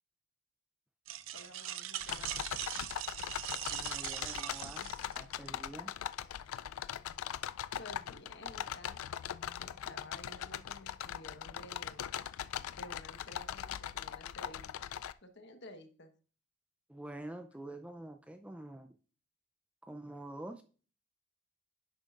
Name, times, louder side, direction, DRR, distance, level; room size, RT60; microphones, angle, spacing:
sound 1, 1.1-5.5, right 12 dB, 70° right, 0.5 m, -41 dB
voice 1, 1.3-2.4 6.3-6.4 7.8-9.0 9.6-12.1 12.7-14.6 15.2-16.1, left 1 dB, 55° left, 6 dB, 1.2 m, -52 dB
sound 2, 2.0-15.1, left 10 dB, 85° left, 0.4 m, -41 dB
voice 2, 3.7-4.9 5.1-5.9 16.9-18.9 19.8-20.6, right 1 dB, 5° right, 6 dB, 0.4 m, -46 dB
10.5 x 7.6 x 2.4 m, 0.39 s
head